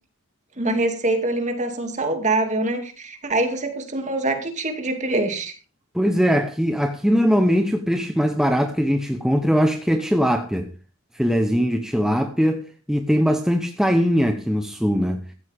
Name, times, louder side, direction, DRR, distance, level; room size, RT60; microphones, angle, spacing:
voice 1, 0.6-5.5, right 2 dB, 35° right, 2.5 m, -24 dB
voice 2, 5.9-10.7 11.1-15.2, equal, ahead, 0.9 m, -21 dB
15.5 x 13.5 x 3.6 m
head